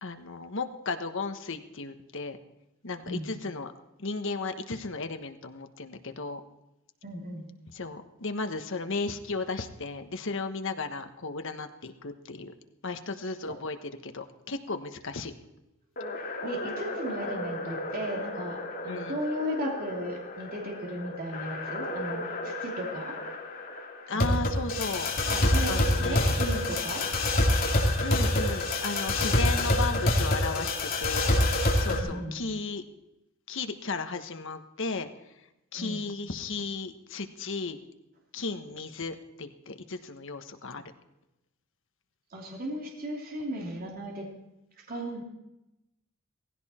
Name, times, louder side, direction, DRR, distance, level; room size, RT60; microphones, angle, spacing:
voice 1, 0.0-2.4 2.8-3.7 4.0-6.4 7.7-12.5 12.8-13.8 14.0-15.3 18.9-19.2 24.1-25.1 25.7-26.3 28.0-30.7 31.0-31.4 31.8-32.8 33.5-35.1 35.7-37.8 38.3-40.8, left 3 dB, 65° left, 8 dB, 1.3 m, -35 dB
voice 2, 7.0-7.4 13.5-13.6 16.4-23.2 24.1-24.6 25.3-27.0 31.9-32.3 35.8-36.0 42.3-44.3 44.8-45.2, equal, 45° right, 0 dB, 3.0 m, -36 dB
sound 1, 16.0-32.0, left 1 dB, 45° left, 2.7 m, -28 dB
17.5 x 16.0 x 4.4 m, 0.92 s
head